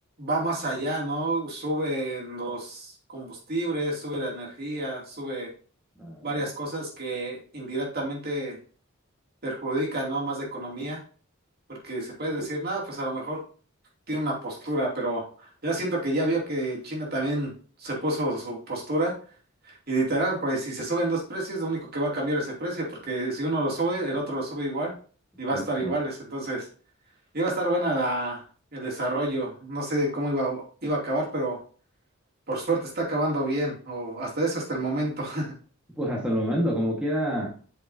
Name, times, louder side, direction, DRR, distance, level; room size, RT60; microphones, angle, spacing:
voice 1, 0.2-5.5 6.2-8.6 9.4-11.0 11.7-13.4 14.1-15.3 15.6-17.5 17.8-19.1 19.6-24.9 25.4-26.7 27.3-28.4 28.7-31.6 32.5-35.6, right 1 dB, 45° right, -2 dB, 2.7 m, -29 dB
voice 2, 6.0-6.3 25.5-26.0 36.0-37.5, equal, 5° right, -3 dB, 1.5 m, -28 dB
8.2 x 6.2 x 2.8 m, 0.41 s
head